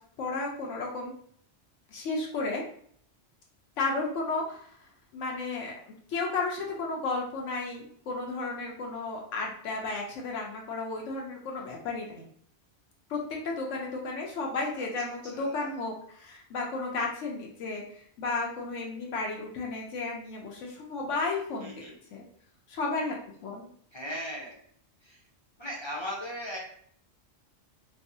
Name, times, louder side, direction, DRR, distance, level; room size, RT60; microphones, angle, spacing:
voice 1, 0.2-1.1 1.9-2.6 3.8-4.7 5.1-5.7 6.1-12.3 13.1-21.7 22.1-22.3 22.7-23.2 23.4-23.7, left 3 dB, 85° left, -1 dB, 1.0 m, -33 dB
voice 2, 15.3-15.8 21.6-22.0 23.9-24.6 25.0-25.2 25.6-26.6, equal, 35° left, -3 dB, 0.5 m, -38 dB
4.4 x 2.0 x 2.6 m, 0.62 s
omnidirectional pair, 1.2 m